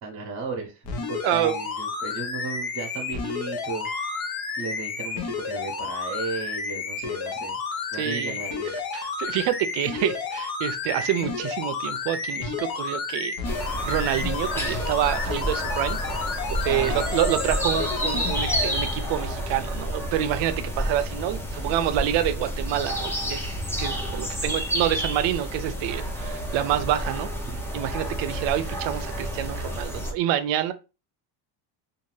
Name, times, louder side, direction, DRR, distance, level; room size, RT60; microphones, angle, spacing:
voice 1, 0.0-3.9 4.6-7.6 7.9-8.8 16.7-17.1 23.9-24.5, right 4 dB, 35° right, 0.8 m, -35 dB
sound 1, 0.8-18.7 19.3-19.4, left 5 dB, 45° left, 0.8 m, -31 dB
voice 2, 1.2-1.6 8.0-8.4 8.9-13.3 13.8-16.0 16.6-23.5 23.8-27.3 27.7-30.7, right 11 dB, 65° right, 0.5 m, -27 dB
Piano, 3.8-4.9, left 1 dB, 30° left, 1.2 m, -40 dB
sound 2, 13.4-30.1, equal, 5° left, 0.3 m, -30 dB
2.6 x 2.5 x 3.1 m
cardioid pair, 125°, 49 cm